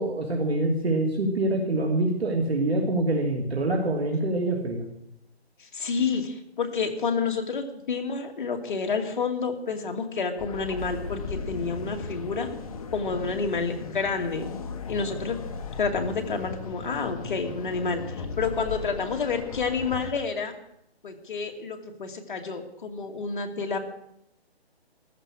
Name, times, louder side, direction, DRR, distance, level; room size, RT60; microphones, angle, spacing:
voice 1, 0.0-4.9, right 2 dB, 70° right, 1 dB, 3.0 m, -25 dB
voice 2, 5.6-12.5 12.9-14.5 14.9-15.4 15.8-20.5 21.0-23.8, left 5 dB, 50° left, 4 dB, 2.5 m, -29 dB
sound 1, 10.4-20.1, left 4 dB, 35° left, 1.3 m, -36 dB
14.5 x 12.5 x 6.5 m, 0.77 s
hypercardioid pair, 165°, 32 cm